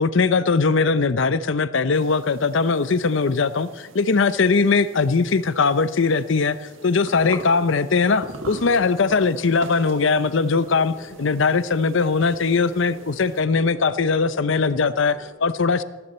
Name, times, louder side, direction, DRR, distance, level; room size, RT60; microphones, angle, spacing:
voice 1, 0.0-6.6 6.8-15.8, left 4 dB, 60° left, 15 dB, 0.6 m, -20 dB
sound 1, 1.9-13.4, right 2 dB, 65° right, 1.7 m, -43 dB
sound 2, 6.2-15.3, right 1 dB, ahead, 3.7 m, -46 dB
18.5 x 15.5 x 4.3 m, 1.3 s
head